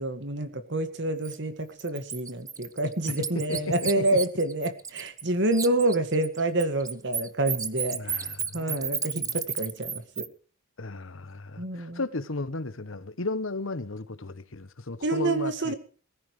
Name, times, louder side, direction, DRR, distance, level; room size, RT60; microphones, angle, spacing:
voice 1, 0.0-8.3 8.5-10.3 11.6-12.0 15.0-15.7, right 2 dB, 55° right, 2.0 m, -28 dB
Bird, 1.2-1.4 1.8-5.3 5.5-10.3, right 7 dB, 15° right, 0.6 m, -33 dB
voice 2, 3.1-4.2 7.9-8.8 9.1-9.4 10.8-15.7, left 2 dB, 65° left, 1.2 m, -35 dB
21.5 x 14.5 x 3.3 m
head